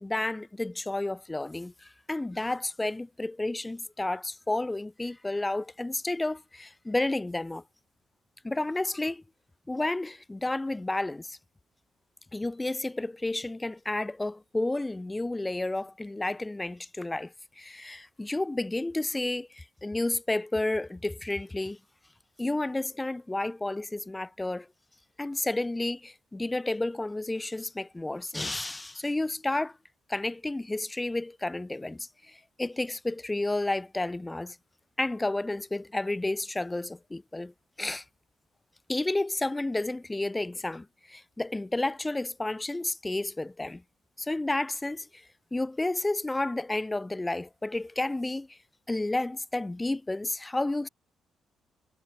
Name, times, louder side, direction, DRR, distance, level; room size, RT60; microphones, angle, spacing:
voice 1, 0.0-7.6 8.4-9.2 9.7-11.4 12.3-21.8 22.4-24.7 25.2-29.8 30.1-34.6 35.0-37.5 37.8-38.0 38.9-43.8 44.2-48.6 48.9-50.9, left 2 dB, 15° left, 1.2 m, -31 dB
cardioid pair, 90°, 0 cm